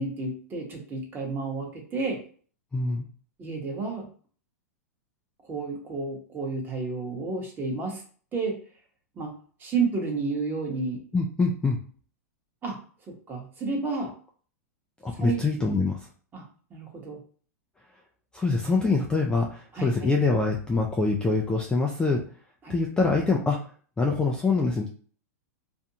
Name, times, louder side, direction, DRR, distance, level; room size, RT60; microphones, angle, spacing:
voice 1, 0.0-2.2 3.4-4.1 5.4-8.0 8.3-8.6 9.1-9.3 9.6-11.0 12.6-12.8 13.1-14.1 15.1-15.4 16.3-16.4 16.7-17.2 19.7-19.9 22.6-22.8, right 4 dB, 25° right, 0 dB, 1.0 m, -31 dB
voice 2, 2.7-3.1 11.1-11.8 15.0-16.1 18.3-22.2 22.7-23.7 24.0-24.9, left 3 dB, 10° left, 0 dB, 0.3 m, -24 dB
2.5 x 2.2 x 2.8 m, 0.44 s
hypercardioid pair, 120°, 9 cm